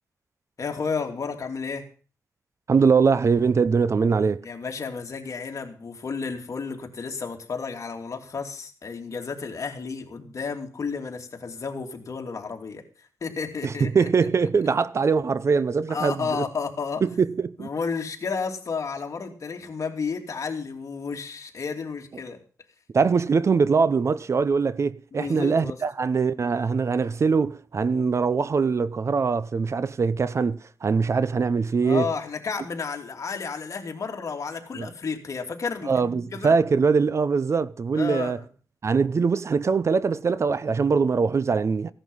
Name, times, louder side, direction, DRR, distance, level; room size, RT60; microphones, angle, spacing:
voice 1, 0.6-1.9 4.4-14.1 15.9-17.1 17.6-22.4 25.1-25.8 31.8-36.5 37.9-38.5, left 5 dB, 50° left, 2.8 m, -32 dB
voice 2, 2.7-4.4 13.6-16.4 17.0-17.7 22.9-32.1 34.8-34.9 35.9-38.4 38.8-41.9, right 5 dB, 45° right, 0.6 m, -22 dB
16.0 x 11.0 x 5.5 m
wide cardioid pair, 120°, 7 cm